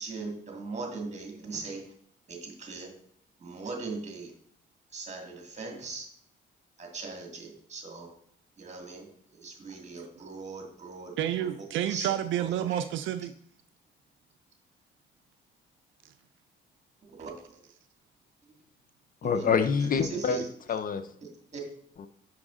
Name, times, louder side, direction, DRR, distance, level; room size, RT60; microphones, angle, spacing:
voice 1, 0.0-1.8 2.3-2.9 3.4-4.3 4.9-6.1 6.8-8.1 8.6-9.1 9.4-11.2 11.9-12.1 12.4-12.5 17.2-17.3 19.4-19.5 20.0-20.5 21.5-21.6, right 4 dB, 35° right, 1.9 m, -39 dB
voice 2, 11.2-13.3, right 11 dB, 75° right, 0.4 m, -29 dB
voice 3, 19.2-21.0 22.0-22.1, left 6 dB, 45° left, 0.5 m, -27 dB
6.2 x 4.9 x 3.6 m
cardioid pair, 90°, 20 cm